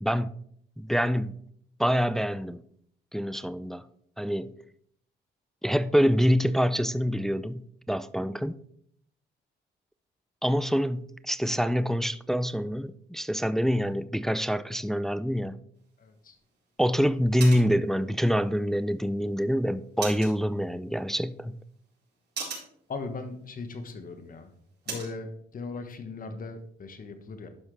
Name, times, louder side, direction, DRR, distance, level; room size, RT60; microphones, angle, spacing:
voice 1, 0.0-0.3 0.8-1.3 1.8-2.6 3.1-3.8 4.2-4.5 5.6-8.6 10.4-15.6 16.8-21.6, equal, ahead, 0.3 m, -26 dB
sound 1, 15.7-25.2, right 5 dB, 55° right, 4.1 m, -44 dB
voice 2, 16.0-16.4 22.9-24.5 24.9-27.5, left 3 dB, 45° left, 1.3 m, -38 dB
12.0 x 5.6 x 3.3 m
cardioid pair, 90°, 20 cm